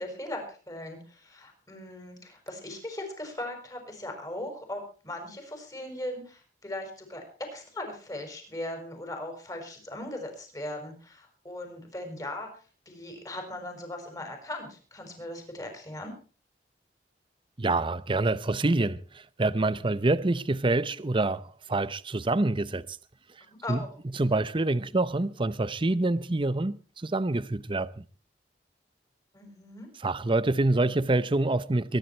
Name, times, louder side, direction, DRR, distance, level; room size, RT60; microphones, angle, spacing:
voice 1, 0.0-16.1 23.6-23.9 29.3-29.9, left 1 dB, 20° left, 5.4 m, -39 dB
voice 2, 17.6-23.0 23.4-23.8 24.1-28.0 30.0-32.0, right 2 dB, 30° right, 0.7 m, -26 dB
23.0 x 11.0 x 4.4 m
head